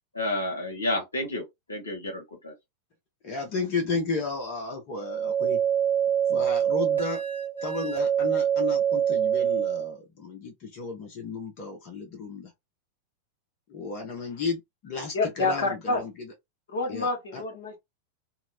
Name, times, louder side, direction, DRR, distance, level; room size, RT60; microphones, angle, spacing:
voice 1, 0.1-1.4 1.7-2.5, left 1 dB, 80° left, 0.9 m, -30 dB
voice 2, 3.2-5.6 6.3-7.2 7.6-12.5 13.7-16.3 16.9-17.4, left 4 dB, 40° left, 0.7 m, -33 dB
sound 1, 5.0-9.9, right 9 dB, 80° right, 0.9 m, -25 dB
voice 3, 15.1-16.0 16.7-17.8, left 3 dB, 60° left, 1.2 m, -27 dB
2.8 x 2.0 x 2.6 m
figure-of-eight pair, 90°, 0 cm